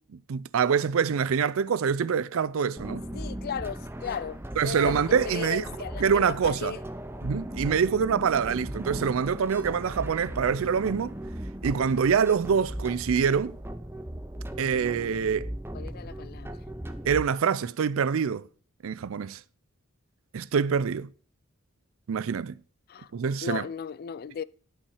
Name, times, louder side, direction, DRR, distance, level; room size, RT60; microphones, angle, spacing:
voice 1, 0.0-3.0 4.6-5.7 6.0-6.7 7.2-11.1 11.6-13.6 14.6-15.5 17.0-18.5 18.8-19.4 20.3-21.1 22.1-22.5 23.1-23.6, right 6 dB, 65° right, 0.4 m, -25 dB
sound 1, 2.8-17.2, right 1 dB, 10° right, 0.6 m, -37 dB
voice 2, 3.1-5.0 5.3-6.8 15.7-16.5 22.9-23.1 23.4-24.4, left 6 dB, 45° left, 0.3 m, -36 dB
11.5 x 5.6 x 4.9 m
head